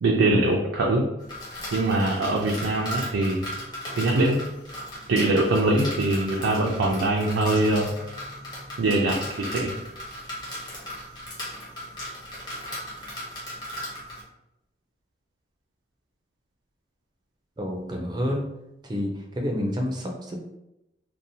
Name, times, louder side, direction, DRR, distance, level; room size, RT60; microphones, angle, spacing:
voice 1, 0.0-1.0 1.7-3.4 4.0-4.4 5.1-7.9 8.8-9.7, right 2 dB, 90° right, -1 dB, 0.4 m, -22 dB
sound 1, 1.2-14.2, equal, 20° left, 0.7 m, -37 dB
voice 2, 17.6-18.4 18.8-20.4, equal, 20° right, 1 dB, 0.3 m, -29 dB
2.6 x 2.0 x 2.7 m, 0.90 s
head